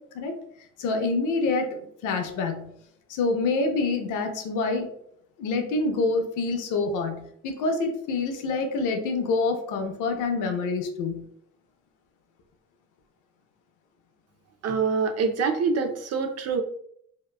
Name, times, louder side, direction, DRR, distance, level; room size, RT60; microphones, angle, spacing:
voice 1, 0.8-2.7 3.1-4.9 5.4-11.2, left 3 dB, 85° left, 5 dB, 0.5 m, -26 dB
voice 2, 14.6-16.6, right 5 dB, 55° right, 6 dB, 0.4 m, -25 dB
2.8 x 2.1 x 2.2 m, 0.69 s
cardioid pair, 90°, 30 cm